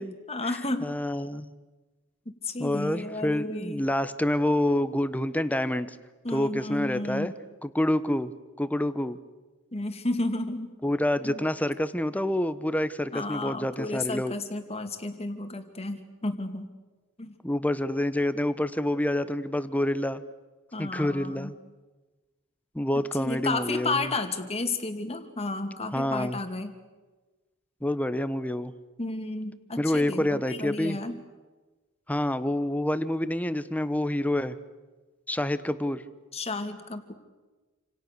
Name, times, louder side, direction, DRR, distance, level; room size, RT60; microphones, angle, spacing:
voice 1, 0.3-0.9 2.4-3.9 6.2-7.3 9.7-10.7 11.2-11.4 13.1-16.7 17.2-17.3 20.7-21.5 23.2-26.7 29.0-31.1 36.3-37.1, left 2 dB, 30° left, 6 dB, 2.5 m, -32 dB
voice 2, 0.8-1.5 2.6-6.0 6.3-7.3 7.6-8.3 8.6-9.2 10.8-14.4 17.4-20.2 20.8-21.5 22.7-24.1 25.9-26.4 27.8-28.7 29.8-31.0 32.1-34.6 35.3-36.0, left 1 dB, 5° left, 13 dB, 1.1 m, -27 dB
28.5 x 27.0 x 6.8 m, 1.2 s
head